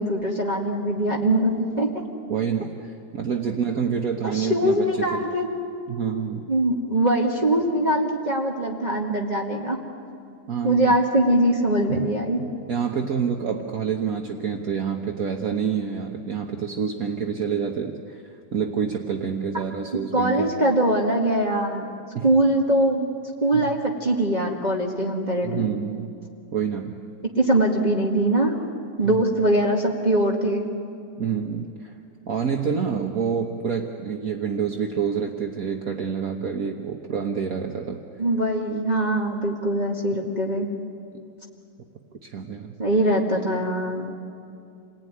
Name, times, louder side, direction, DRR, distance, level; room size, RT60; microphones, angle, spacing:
voice 1, 0.0-2.0 4.3-5.5 6.5-9.8 10.6-12.4 20.1-21.9 22.2-23.1 23.4-25.7 27.2-28.6 29.0-30.7 38.2-40.7 42.8-44.1, right 1 dB, 25° right, -2 dB, 2.1 m, -22 dB
voice 2, 2.3-5.2 5.9-6.5 10.5-10.9 11.9-12.1 12.4-18.2 18.5-20.5 22.1-22.2 23.5-23.7 25.4-26.1 26.5-27.0 29.1-29.2 31.2-31.9 32.3-38.0 42.2-42.7, right 7 dB, 55° right, 2 dB, 1.6 m, -27 dB
29.0 x 19.5 x 9.7 m, 2.6 s
omnidirectional pair, 1.8 m